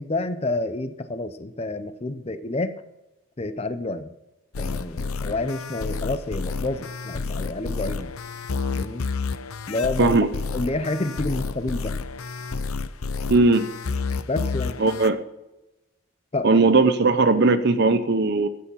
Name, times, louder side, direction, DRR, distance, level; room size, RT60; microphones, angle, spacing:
voice 1, 0.0-2.8 3.4-4.1 4.6-8.1 8.7-9.0 9.7-10.2 10.5-11.9 14.3-14.8 16.3-16.6, left 2 dB, 30° left, 11 dB, 0.6 m, -29 dB
sound 1, 4.5-15.1, left 4 dB, 85° left, 0.7 m, -30 dB
voice 2, 13.3-13.7 14.8-15.2 16.4-18.5, right 3 dB, 50° right, 10 dB, 0.7 m, -18 dB
14.0 x 8.4 x 5.5 m, 0.97 s
head